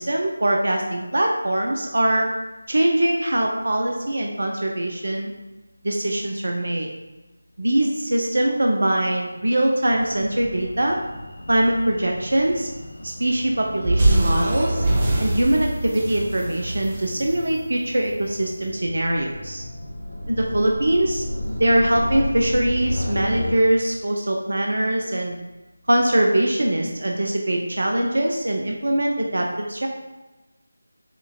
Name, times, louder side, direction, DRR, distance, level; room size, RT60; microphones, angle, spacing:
voice 1, 0.0-2.3 2.7-5.3 5.8-6.9 7.6-11.0 11.5-12.7 13.0-14.9 15.2-19.6 20.3-21.2 21.6-25.4 25.9-29.9, right 1 dB, 65° right, 1 dB, 0.5 m, -22 dB
sound 1, 9.9-23.5, left 1 dB, 75° left, 0.7 m, -34 dB
sound 2, 13.8-18.2, right 1 dB, 25° right, 0.7 m, -23 dB
7.1 x 2.5 x 2.7 m, 1.1 s
figure-of-eight pair, 165°, 0 cm